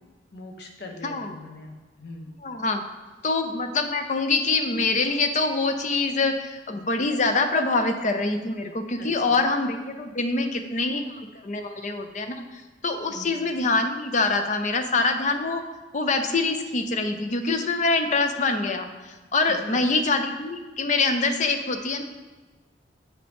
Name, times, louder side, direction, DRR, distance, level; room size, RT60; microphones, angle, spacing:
voice 1, 0.3-2.3 9.0-9.4 13.1-13.4 19.5-19.8, left 2 dB, 60° left, 2 dB, 1.0 m, -42 dB
voice 2, 1.0-1.3 2.4-2.8 3.2-15.6 15.9-22.0, left 3 dB, 45° left, 7 dB, 0.6 m, -25 dB
7.7 x 5.8 x 3.5 m, 1.3 s
head